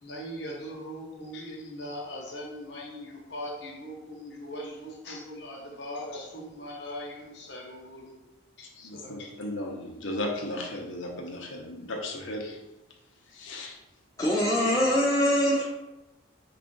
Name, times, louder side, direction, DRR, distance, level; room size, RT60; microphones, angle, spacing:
voice 1, 0.0-8.1 8.6-9.4, equal, 55° left, -2 dB, 1.0 m, -40 dB
voice 2, 8.8-12.6 13.3-13.8, left 1 dB, 75° left, 0 dB, 0.8 m, -35 dB
voice 3, 14.2-15.6, equal, 15° left, -4 dB, 0.4 m, -23 dB
4.7 x 2.5 x 3.8 m, 1.0 s
head